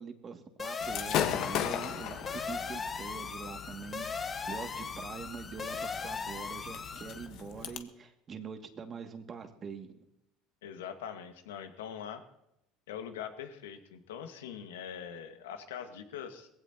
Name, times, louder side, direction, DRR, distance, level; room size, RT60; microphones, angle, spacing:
voice 1, 0.0-10.0, right 6 dB, 35° right, 4 dB, 2.3 m, -44 dB
sound 1, 0.6-7.3, left 5 dB, 30° left, 1.7 m, -38 dB
Gunshot gunfire / Fireworks, 0.8-7.8, left 10 dB, 60° left, 1.4 m, -38 dB
voice 2, 10.6-12.2 12.9-16.5, left 8 dB, 80° left, 6 dB, 1.8 m, -42 dB
21.0 x 16.0 x 3.0 m, 0.82 s
hypercardioid pair, 75°, 0 cm